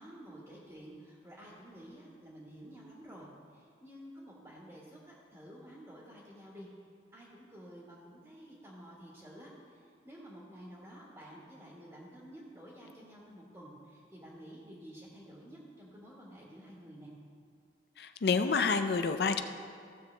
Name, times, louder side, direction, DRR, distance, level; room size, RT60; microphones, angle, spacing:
voice 1, 0.0-6.7 7.1-17.1, equal, 20° right, -5 dB, 1.5 m, -51 dB
voice 2, 18.0-19.4, left 5 dB, 65° left, 8 dB, 0.4 m, -28 dB
15.0 x 7.0 x 3.3 m, 2.2 s
head